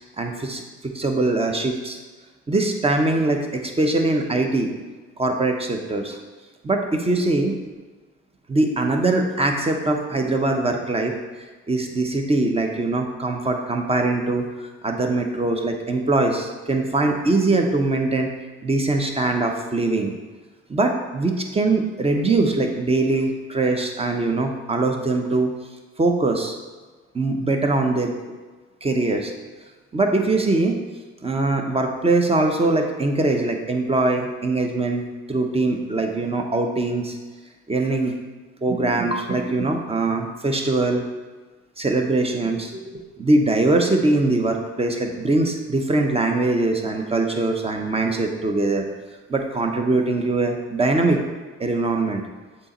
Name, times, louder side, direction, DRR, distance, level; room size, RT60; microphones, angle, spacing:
voice 1, 0.2-2.0 2.5-4.7 5.2-6.2 6.6-7.5 8.5-11.1 11.7-14.5 14.8-18.3 18.6-20.1 20.7-25.5 26.0-26.6 27.1-28.1 28.8-29.3 29.9-30.8 31.2-35.0 35.3-37.2 37.7-38.2 38.6-41.1 41.8-48.8 49.3-51.2 51.6-52.2, right 2 dB, 20° right, 3 dB, 0.8 m, -22 dB
7.6 x 3.0 x 4.3 m, 1.3 s
cardioid pair, 90°, 30 cm